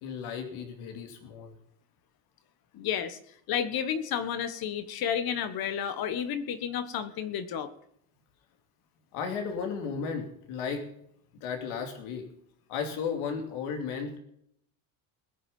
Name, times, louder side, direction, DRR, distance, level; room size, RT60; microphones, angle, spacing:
voice 1, 0.0-1.5 9.1-10.9 11.4-12.3 12.7-14.2, left 6 dB, 85° left, 4 dB, 2.8 m, -34 dB
voice 2, 2.7-3.2 3.5-7.7, left 8 dB, 50° left, 12 dB, 1.4 m, -31 dB
20.5 x 7.3 x 5.5 m, 0.70 s
cardioid pair, 165°, 48 cm